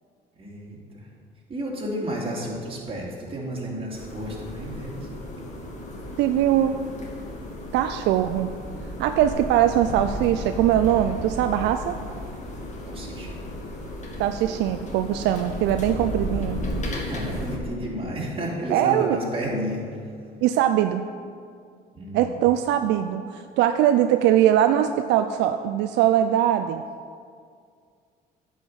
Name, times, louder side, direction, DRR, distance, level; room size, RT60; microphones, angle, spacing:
voice 1, 0.4-1.1 1.5-5.1 12.8-13.4 17.1-20.0 21.9-22.4, right 1 dB, 30° right, -3 dB, 2.7 m, -32 dB
sound 1, 3.9-17.6, left 1 dB, 40° left, 2.1 m, -34 dB
voice 2, 6.2-6.7 7.7-8.5 9.0-12.0 14.2-16.6 18.7-19.2 20.4-21.0 22.1-26.8, right 11 dB, 75° right, 8 dB, 0.4 m, -21 dB
9.3 x 5.0 x 7.9 m, 2.2 s
supercardioid pair, 85°, 18 cm